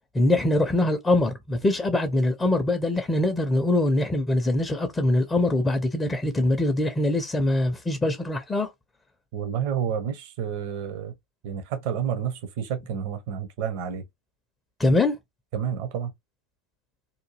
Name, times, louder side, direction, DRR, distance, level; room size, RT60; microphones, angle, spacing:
voice 1, 0.1-8.7 14.8-15.2, left 1 dB, 15° left, 0.5 m, -23 dB
voice 2, 9.3-11.1 11.4-14.0 15.5-16.1, right 8 dB, 45° right, 0.6 m, -30 dB
2.7 x 2.2 x 3.1 m
figure-of-eight pair, 90°, 0 cm